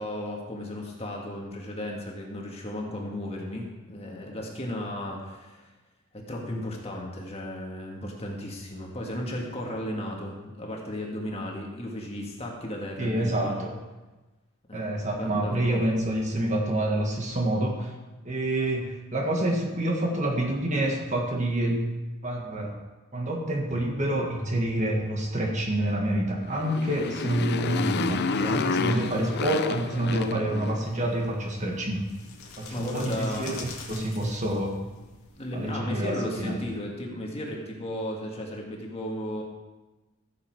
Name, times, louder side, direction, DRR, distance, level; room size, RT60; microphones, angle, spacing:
voice 1, 0.0-5.7 6.1-13.6 14.7-14.9 15.2-15.8 28.7-29.1 32.7-33.5 35.4-39.4, left 1 dB, 30° left, 0 dB, 1.8 m, -35 dB
voice 2, 13.0-13.7 14.7-17.9 18.2-21.8 22.2-22.8 23.1-32.1 32.6-34.7 35.5-36.5, right 1 dB, 35° right, 0 dB, 1.6 m, -27 dB
Motorcycle, 26.4-31.1, left 4 dB, 50° left, 0.5 m, -29 dB
sound 1, 30.8-35.8, left 4 dB, 80° left, 2.1 m, -46 dB
15.0 x 7.3 x 4.7 m, 1.2 s
head